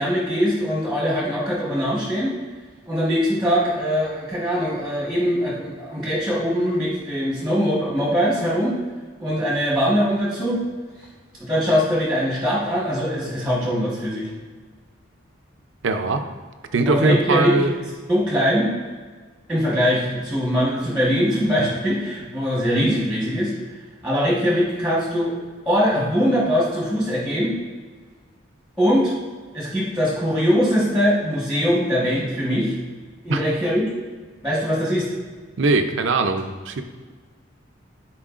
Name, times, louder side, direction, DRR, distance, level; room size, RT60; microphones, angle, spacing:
voice 1, 0.0-2.3 2.9-8.8 9.2-10.6 11.4-14.3 16.9-17.5 18.1-18.7 19.5-23.5 24.0-25.3 25.6-27.5 28.8-29.1 29.5-32.7 33.2-33.9 34.4-35.1, equal, 5° right, -6 dB, 1.3 m, -22 dB
voice 2, 15.8-16.2 16.7-17.7 33.3-33.4 35.6-36.8, right 3 dB, 75° right, 8 dB, 0.5 m, -20 dB
11.0 x 4.6 x 2.5 m, 1.4 s
head